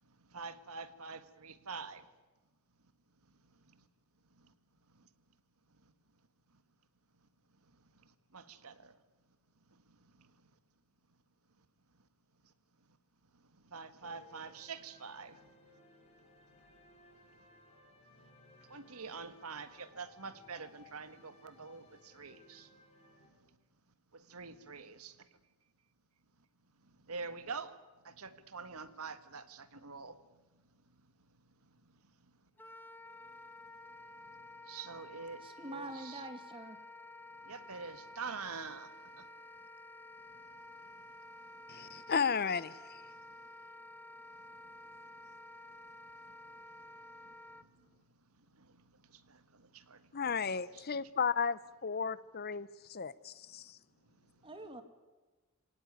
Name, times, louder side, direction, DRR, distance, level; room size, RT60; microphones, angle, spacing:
voice 1, 0.0-2.1 3.3-3.8 4.4-4.5 5.7-5.9 7.7-9.0 9.7-10.5 12.4-12.5 13.3-15.5 18.7-22.7 23.3-23.5 24.1-25.3 26.8-27.8 28.0-30.2 31.0-32.3 33.9-36.2 37.5-39.3 40.3-42.0 43.1-43.3 44.4-47.9 48.3-50.2 50.7-51.0 54.1-54.5, right 5 dB, 80° right, 12 dB, 1.6 m, -48 dB
sound 1, 14.0-23.3, left 2 dB, 30° left, 4.7 m, -62 dB
Wind instrument woodwind instrument, 32.6-47.7, left 1 dB, 10° left, 0.9 m, -52 dB
voice 2, 35.4-36.8 54.4-54.8, right 1 dB, 25° right, 7 dB, 2.3 m, -45 dB
voice 3, 41.7-43.0 50.1-53.3, left 6 dB, 45° left, 17 dB, 0.8 m, -34 dB
26.0 x 18.0 x 9.6 m, 1.2 s
head